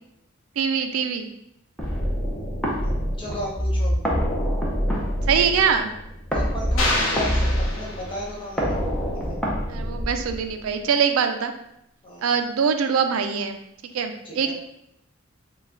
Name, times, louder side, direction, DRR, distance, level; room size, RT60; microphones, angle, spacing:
voice 1, 0.6-1.3 5.3-5.9 9.7-11.5 12.2-13.6 13.9-14.5, right 6 dB, 90° right, 7 dB, 0.4 m, -23 dB
sound 1, 1.8-10.7, equal, 5° left, 0.7 m, -26 dB
voice 2, 3.2-3.9 6.3-8.8 9.1-9.5 12.0-12.3 14.2-14.5, equal, 25° left, -5 dB, 0.9 m, -35 dB
sound 2, 6.8-8.5, left 1 dB, 90° left, 0.8 m, -26 dB
4.0 x 2.3 x 3.7 m, 0.81 s
head